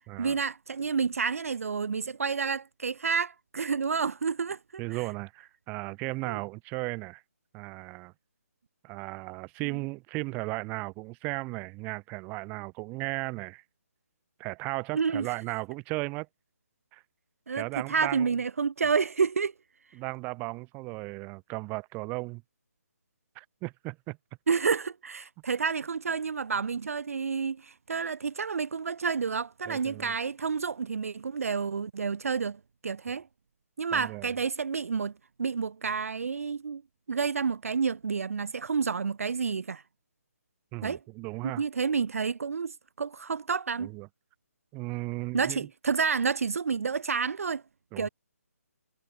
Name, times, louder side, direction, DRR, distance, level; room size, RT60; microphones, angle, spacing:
voice 1, 0.2-4.6 6.2-6.4 14.9-15.3 17.5-19.5 24.5-33.3 33.8-35.1 35.4-36.8 37.1-39.8 40.8-41.0 41.4-43.9 45.3-47.6 48.0-48.1, right 5 dB, 65° right, 0.5 m, -29 dB
voice 2, 4.8-7.2 7.5-8.1 8.8-13.6 14.4-16.3 16.9-17.0 17.5-18.3 19.9-22.4 23.3-24.2 29.7-30.1 33.9-34.3 40.7-41.6 43.8-44.1 44.7-45.7 47.9-48.1, right 26 dB, 20° right, 1.3 m, -36 dB
figure-of-eight pair, 145°, 8 cm